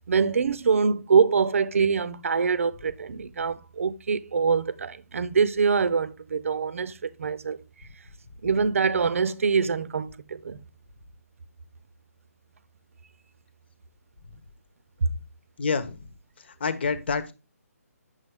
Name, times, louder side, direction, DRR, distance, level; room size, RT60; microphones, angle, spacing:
voice 1, 0.1-7.6 8.4-10.6 15.0-15.1, right 5 dB, 55° right, 0.7 m, -24 dB
voice 2, 15.6-16.1 16.5-17.3, left 5 dB, 45° left, 1.1 m, -28 dB
9.1 x 7.0 x 3.6 m
hypercardioid pair, 170°, 8 cm